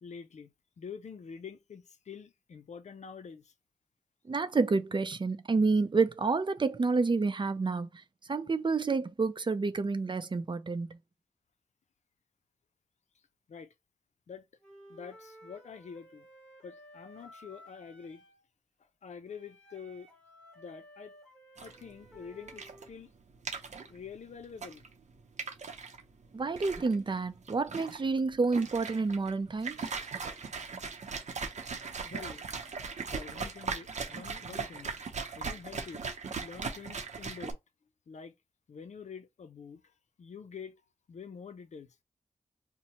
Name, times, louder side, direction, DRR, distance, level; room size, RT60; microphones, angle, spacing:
voice 1, 0.0-3.5 13.5-13.7 14.3-14.5 14.9-16.3 16.6-18.2 19.0-20.1 20.6-21.1 21.6-23.1 23.9-24.9 32.0-32.5 33.1-34.9 35.4-36.1 36.4-37.6 38.1-38.3 38.7-39.8 40.2-40.8 41.1-41.9, left 6 dB, 75° left, 0.5 m, -46 dB
voice 2, 4.3-7.9 8.3-11.0 26.3-29.9, right 4 dB, 40° right, 0.5 m, -29 dB
Wind instrument woodwind instrument, 14.6-18.4 19.3-22.9, equal, 5° left, 1.5 m, -55 dB
sound 1, 21.6-37.5, right 5 dB, 75° right, 0.7 m, -39 dB
2.8 x 2.1 x 4.1 m
cardioid pair, 60°, 12 cm